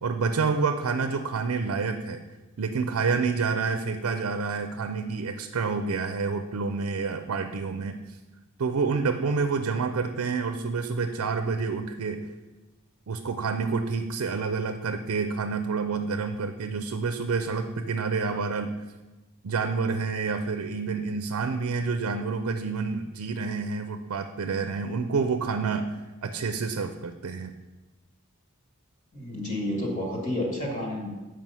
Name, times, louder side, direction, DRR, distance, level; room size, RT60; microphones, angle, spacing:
voice 1, 0.0-2.2 2.6-8.0 8.6-12.3 13.1-18.7 19.4-25.9 26.2-27.5, right 4 dB, 75° right, 7 dB, 0.5 m, -28 dB
voice 2, 29.1-31.1, left 1 dB, 35° left, 0 dB, 1.8 m, -30 dB
7.5 x 5.1 x 5.5 m, 1.2 s
head